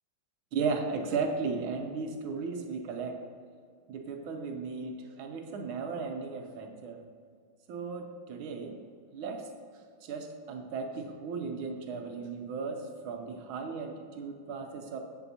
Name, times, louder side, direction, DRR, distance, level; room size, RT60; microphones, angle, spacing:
voice 1, 0.5-3.2 3.9-7.0 7.7-8.8 9.1-9.5 10.0-15.0, right 4 dB, 80° right, 4 dB, 1.5 m, -35 dB
7.9 x 7.1 x 2.7 m, 2.1 s
omnidirectional pair, 2.3 m